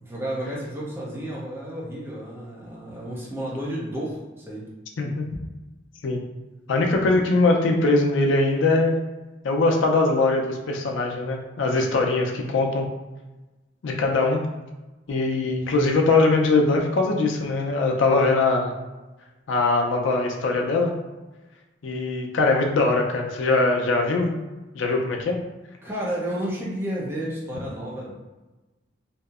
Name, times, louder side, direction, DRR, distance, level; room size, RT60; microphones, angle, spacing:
voice 1, 0.0-4.7 25.8-28.1, right 1 dB, 10° right, -6 dB, 0.6 m, -31 dB
voice 2, 6.7-9.0 9.4-12.9 13.8-14.5 15.1-18.7 19.5-20.9 21.8-24.4 24.7-25.4, left 3 dB, 75° left, 1 dB, 0.4 m, -21 dB
2.7 x 2.0 x 2.3 m, 1.1 s
head